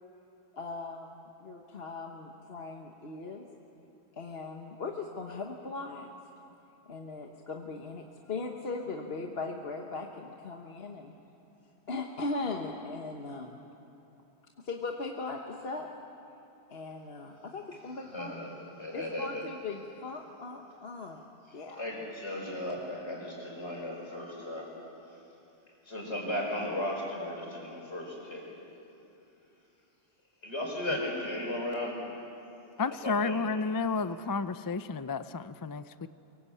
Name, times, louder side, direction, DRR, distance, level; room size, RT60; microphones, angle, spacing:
voice 1, 0.5-3.5 4.2-6.2 6.9-11.1 11.9-13.6 14.6-15.9 16.7-18.4 18.9-21.2 21.5-21.8, left 3 dB, 65° left, 2 dB, 1.5 m, -39 dB
voice 2, 18.0-18.5 18.8-19.5 21.8-24.7 25.9-28.4 30.4-32.0 32.9-33.4, left 1 dB, 80° left, -2 dB, 5.7 m, -35 dB
voice 3, 32.8-36.1, left 4 dB, 30° left, 12 dB, 0.4 m, -31 dB
24.0 x 23.0 x 8.4 m, 2.8 s
omnidirectional pair, 1.1 m